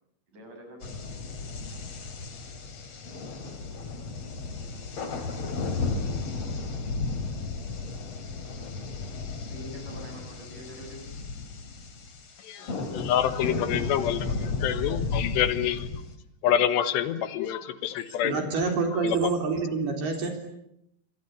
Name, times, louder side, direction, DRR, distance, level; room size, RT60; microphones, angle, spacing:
voice 1, 0.3-1.1 9.5-11.0 12.6-13.0 14.3-14.5, equal, 45° right, 4 dB, 8.3 m, -45 dB
sound 1, 0.8-16.1, left 4 dB, 40° left, 3.4 m, -34 dB
voice 2, 12.4-14.3 14.6-15.9 16.4-18.5 18.9-19.2, left 10 dB, 75° left, 12 dB, 3.3 m, -27 dB
voice 3, 18.2-20.3, right 4 dB, 65° right, 4 dB, 5.6 m, -27 dB
27.5 x 24.5 x 8.5 m, 0.79 s
omnidirectional pair, 5.1 m